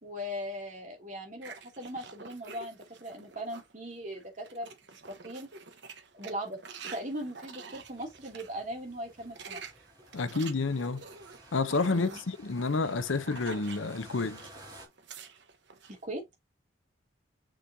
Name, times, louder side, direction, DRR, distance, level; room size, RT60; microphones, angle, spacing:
voice 1, 0.0-5.5 6.1-9.6 11.9-12.2 15.9-16.2, equal, 40° right, 2.7 m, -39 dB
sound 1, 1.4-3.7 4.1-8.5 9.1-14.6 14.9-15.9, right 5 dB, 65° right, 1.1 m, -48 dB
sound 2, 7.7-14.9, right 1 dB, 25° right, 2.9 m, -54 dB
voice 2, 10.1-11.0 11.5-14.4, left 3 dB, 90° left, 0.7 m, -29 dB
6.4 x 6.1 x 2.8 m
head